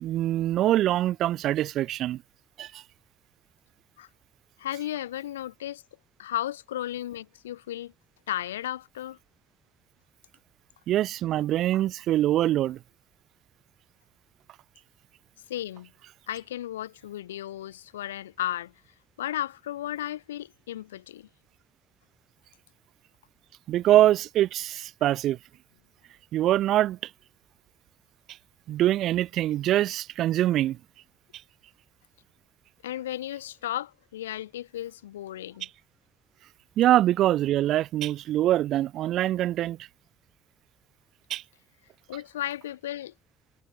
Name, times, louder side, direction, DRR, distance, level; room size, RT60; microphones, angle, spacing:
voice 1, 0.0-2.2 2.6-2.8 10.9-12.8 23.7-25.4 26.3-27.0 28.7-30.8 36.8-39.8 41.3-41.4, right 13 dB, 65° right, 0.3 m, -24 dB
voice 2, 4.6-5.8 6.2-7.9 8.3-9.2 15.5-15.9 16.3-18.7 19.2-21.3 32.8-35.7 42.1-43.1, left 12 dB, 85° left, 0.8 m, -34 dB
hypercardioid pair, 50°, 0 cm